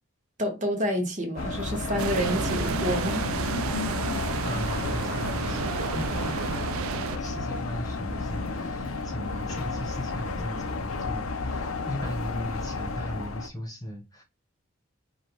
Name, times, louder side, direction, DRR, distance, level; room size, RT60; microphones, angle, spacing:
voice 1, 0.4-3.3, equal, 35° right, 1.0 m, -29 dB
sound 1, 1.4-13.5, left 3 dB, 85° left, 0.7 m, -32 dB
sound 2, 2.0-7.2, right 7 dB, 85° right, 0.4 m, -31 dB
voice 2, 4.4-14.2, equal, 15° left, 1.1 m, -38 dB
5.3 x 2.4 x 3.1 m
head